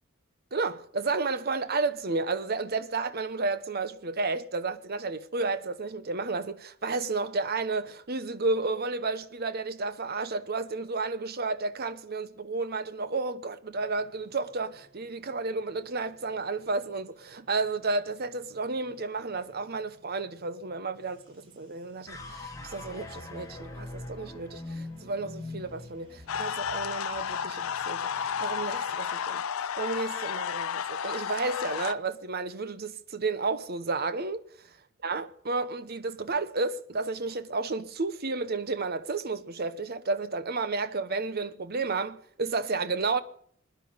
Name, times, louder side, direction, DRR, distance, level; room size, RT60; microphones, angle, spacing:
voice 1, 0.5-34.4 35.0-43.2, right 3 dB, 50° right, 1.0 m, -32 dB
sound 1, 13.7-29.0, equal, 25° right, 6.8 m, -61 dB
sound 2, 22.1-28.4, left 2 dB, 15° left, 2.5 m, -43 dB
sound 3, 26.3-31.9, left 8 dB, 85° left, 0.5 m, -32 dB
25.5 x 10.0 x 5.2 m
head